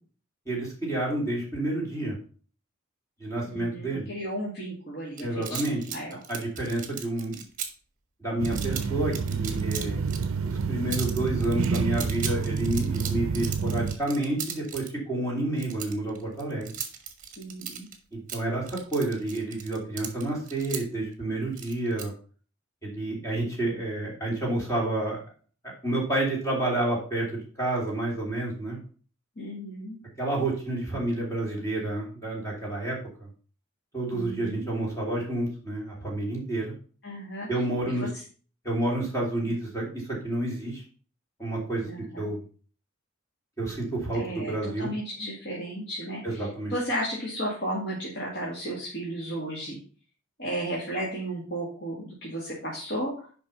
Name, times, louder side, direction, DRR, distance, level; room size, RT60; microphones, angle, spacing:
voice 1, 0.4-2.2 3.2-4.1 5.2-5.8 6.3-7.4 8.2-10.0 10.4-16.7 18.1-22.1 22.8-25.2 25.8-28.8 30.2-33.3 33.9-36.7 37.5-38.1 38.6-40.8 41.4-41.9 42.2-42.4 43.6-44.9 46.2-46.7, right 2 dB, 15° left, -3 dB, 3.1 m, -29 dB
voice 2, 3.5-6.2 17.4-17.9 29.4-30.0 34.1-34.7 37.0-37.5 37.8-38.1 39.4-39.5 41.8-42.3 44.1-49.8 50.4-53.3, right 1 dB, 50° left, -5 dB, 2.3 m, -34 dB
sound 1, 5.2-7.7 8.4-8.8 9.1-10.3 10.5-10.6 10.9-14.9 15.6-18.0 18.3-20.8 21.6-22.0, right 9 dB, 40° right, 1.4 m, -37 dB
sound 2, 8.4-14.0, right 5 dB, 70° right, 0.5 m, -28 dB
7.2 x 5.3 x 5.5 m, 0.41 s
head